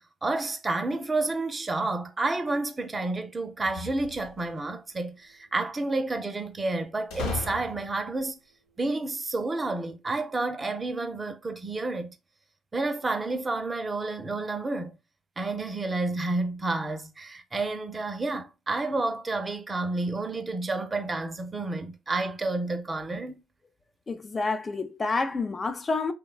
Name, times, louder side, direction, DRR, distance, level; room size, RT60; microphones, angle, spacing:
voice 1, 0.0-8.4 8.8-12.2 12.7-15.0 15.4-23.4, right 2 dB, 25° right, 0.6 m, -30 dB
sound 1, 3.6-4.6 7.1-8.2, left 4 dB, 85° left, 1.0 m, -36 dB
voice 2, 24.1-26.1, left 3 dB, 35° left, 0.5 m, -28 dB
3.0 x 2.3 x 2.3 m
supercardioid pair, 65°, 0 cm